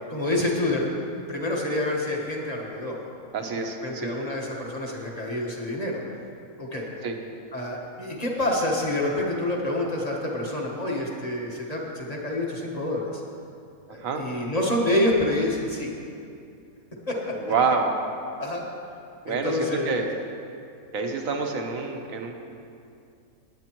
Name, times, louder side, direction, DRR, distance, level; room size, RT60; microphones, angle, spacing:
voice 1, 0.1-3.0 3.6-6.0 6.6-6.9 7.5-13.2 13.9-15.9 17.1-17.4 18.4-18.7 19.2-19.9, left 1 dB, 25° left, -2 dB, 1.4 m, -27 dB
voice 2, 3.3-4.1 7.0-7.2 13.9-14.2 17.4-17.9 19.2-20.1 20.9-22.4, right 4 dB, 65° right, 4 dB, 1.3 m, -27 dB
18.5 x 9.0 x 3.0 m, 2.5 s
omnidirectional pair, 1.6 m